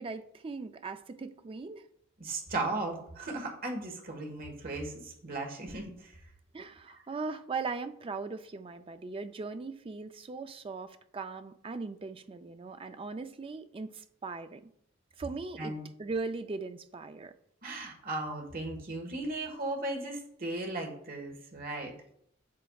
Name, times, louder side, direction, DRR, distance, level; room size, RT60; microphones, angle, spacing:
voice 1, 0.0-1.9 6.5-14.7 15.2-17.3, right 4 dB, 30° right, 0.4 m, -39 dB
voice 2, 2.2-6.1 6.9-7.0 15.6-15.8 17.6-21.9, right 2 dB, 50° right, 1.5 m, -36 dB
7.6 x 6.9 x 2.3 m
head